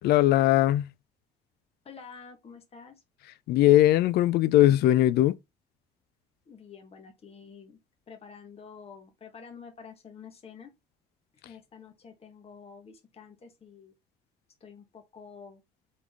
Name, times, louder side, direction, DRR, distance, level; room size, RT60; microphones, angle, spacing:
voice 1, 0.0-0.9 3.5-5.4, left 14 dB, 70° left, 0.4 m, -20 dB
voice 2, 1.8-3.0 6.4-7.8 8.1-10.7 11.4-13.9 14.6-15.6, left 6 dB, 35° left, 1.3 m, -48 dB
3.9 x 3.7 x 3.5 m
cardioid pair, 110°, 17 cm